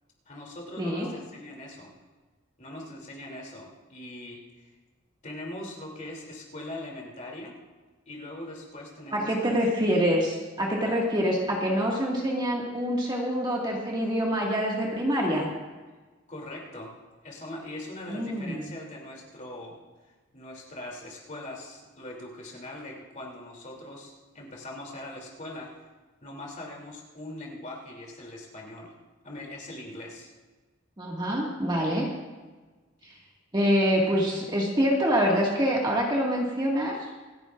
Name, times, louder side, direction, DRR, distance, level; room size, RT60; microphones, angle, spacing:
voice 1, 0.3-1.9 2.6-4.7 5.2-7.6 8.1-9.3 16.3-16.9 17.2-19.8 20.3-25.9 26.2-28.9 29.2-30.3, left 1 dB, 35° left, -1 dB, 2.9 m, -41 dB
voice 2, 0.8-1.1 9.1-15.5 18.1-18.7 31.0-32.1 33.5-37.0, equal, 20° right, -2 dB, 1.9 m, -25 dB
27.0 x 10.5 x 2.5 m, 1.3 s
head